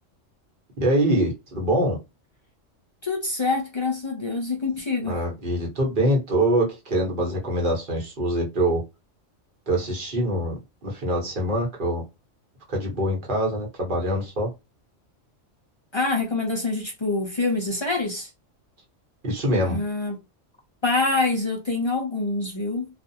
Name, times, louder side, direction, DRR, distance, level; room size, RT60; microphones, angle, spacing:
voice 1, 0.8-2.0 5.0-8.8 9.7-12.0 12.7-14.5 19.2-19.8, right 1 dB, 45° right, 1.0 m, -24 dB
voice 2, 3.0-5.1 15.9-18.3 19.6-20.2 20.8-22.9, left 3 dB, 45° left, 0.3 m, -25 dB
2.5 x 2.3 x 2.7 m
omnidirectional pair, 1.3 m